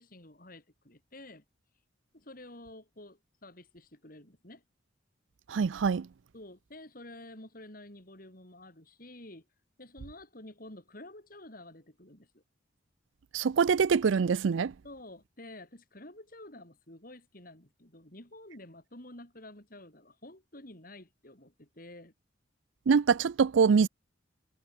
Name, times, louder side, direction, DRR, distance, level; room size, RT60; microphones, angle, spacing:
voice 1, 0.0-1.4 2.1-4.6 6.3-9.5 9.8-12.4 14.8-22.1, left 1 dB, 45° left, 5.1 m, -50 dB
voice 2, 5.5-6.1 13.3-14.7 22.9-23.9, right 6 dB, 75° right, 0.4 m, -24 dB
head